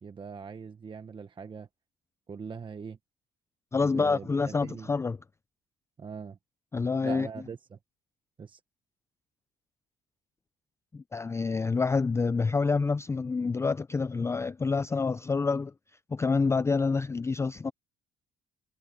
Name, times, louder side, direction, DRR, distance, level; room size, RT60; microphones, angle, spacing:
voice 1, 0.0-1.7 2.3-3.0 3.8-4.9 6.0-6.4 7.0-7.8 8.4-8.6, right 5 dB, 30° right, 1.1 m, -41 dB
voice 2, 3.7-5.2 6.7-7.3 10.9-15.7 16.1-17.7, left 4 dB, 15° left, 0.4 m, -27 dB
cardioid pair, 110°, 17 cm